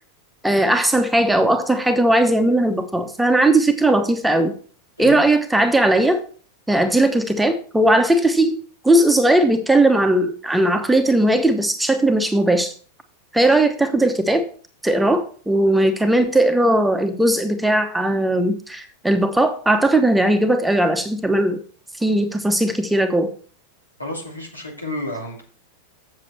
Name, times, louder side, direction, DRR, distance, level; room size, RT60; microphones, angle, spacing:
voice 1, 0.4-4.5 5.0-6.2 6.7-12.7 13.3-14.4 14.8-21.6 22.0-23.3, right 1 dB, 5° right, 6 dB, 1.0 m, -18 dB
voice 2, 24.0-25.4, left 1 dB, 85° left, 0 dB, 2.5 m, -31 dB
7.6 x 7.6 x 4.5 m, 0.42 s
figure-of-eight pair, 90°, 0 cm